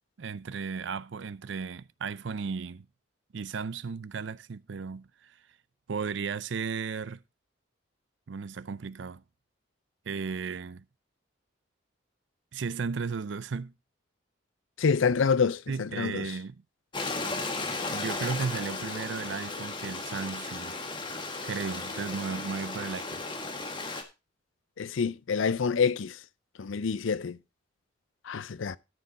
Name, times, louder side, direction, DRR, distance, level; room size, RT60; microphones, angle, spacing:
voice 1, 0.2-2.9 3.3-5.4 5.9-7.2 8.3-9.2 10.1-10.8 12.5-13.7 15.7-16.6 17.9-20.8 21.4-23.2, right 5 dB, 65° right, 0.5 m, -35 dB
voice 2, 14.8-16.4 24.8-26.2 26.6-27.4 28.2-28.8, left 5 dB, 75° left, 0.5 m, -27 dB
Stream, 16.9-24.0, left 3 dB, 25° left, 1.4 m, -35 dB
13.0 x 6.8 x 4.1 m
head